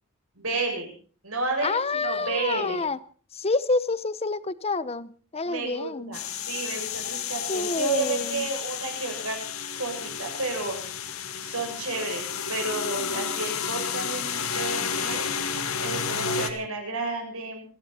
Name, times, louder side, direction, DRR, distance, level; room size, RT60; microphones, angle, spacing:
voice 1, 0.4-0.9 1.2-2.8 5.4-9.4 9.8-10.7 11.4-15.3 15.8-17.6, right 3 dB, 75° right, 2 dB, 7.6 m, -31 dB
voice 2, 1.6-3.0 3.3-6.2 7.5-8.5 12.9-13.2, left 3 dB, 30° left, 16 dB, 0.8 m, -28 dB
sound 1, 6.1-16.5, left 6 dB, 80° left, 2.1 m, -31 dB
27.5 x 11.5 x 4.3 m, 0.43 s
head